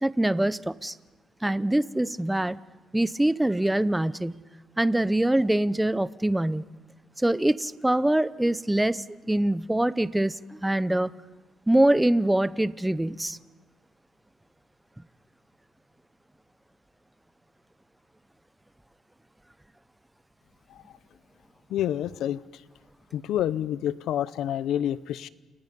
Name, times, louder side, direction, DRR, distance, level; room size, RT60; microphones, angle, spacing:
voice 1, 0.0-0.9 1.4-2.6 2.9-4.4 4.8-6.6 7.2-11.1 11.7-13.4, right 1 dB, 10° right, 16 dB, 0.7 m, -24 dB
voice 2, 21.7-22.6 23.1-25.3, left 11 dB, 80° left, 16 dB, 0.8 m, -28 dB
29.5 x 28.5 x 5.4 m, 1.2 s
cardioid pair, 90°, 0 cm